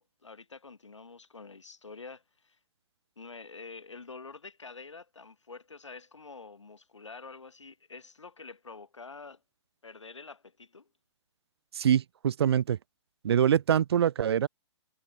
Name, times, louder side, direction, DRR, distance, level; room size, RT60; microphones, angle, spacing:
voice 1, 0.0-2.6 3.2-9.4 9.8-10.9, left 4 dB, 75° left, 3.1 m, -47 dB
voice 2, 11.7-12.8 13.2-14.5, right 9 dB, 55° right, 0.4 m, -24 dB
figure-of-eight pair, 120°, 16 cm